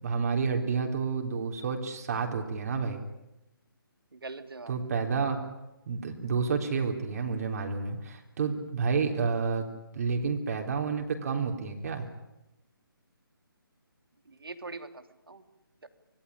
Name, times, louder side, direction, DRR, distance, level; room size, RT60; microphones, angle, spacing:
voice 1, 0.0-3.0 4.7-5.4 5.9-9.7 9.9-12.1, right 5 dB, 45° right, 3 dB, 3.8 m, -30 dB
voice 2, 4.1-4.7 14.3-15.4 15.8-15.9, right 3 dB, 75° right, 9 dB, 2.9 m, -43 dB
26.0 x 19.5 x 10.0 m, 0.92 s
figure-of-eight pair, 150°, 12 cm